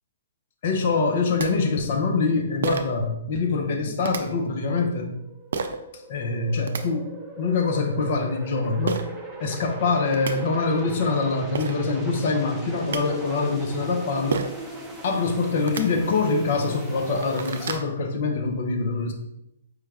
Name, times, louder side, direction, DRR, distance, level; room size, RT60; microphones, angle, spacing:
voice 1, 0.6-5.2 5.9-9.0 9.4-14.4 15.0-19.1, left 4 dB, 55° left, 4 dB, 0.7 m, -24 dB
sound 1, 1.1-1.2 1.4-1.5 2.6-3.0 4.0-4.2 5.5-5.8 6.4-6.8 8.9-9.0 9.8-9.9 10.1-10.3 11.2-11.3 11.5-11.8 12.6-13.0 14.3-14.6 15.6-15.8 16.5-16.6 17.0-17.9, right 5 dB, 70° right, 0.4 m, -29 dB
sound 2, 3.0-17.8, right 1 dB, 5° right, 0.8 m, -40 dB
4.7 x 2.3 x 3.3 m, 0.85 s
hypercardioid pair, 135°, 0 cm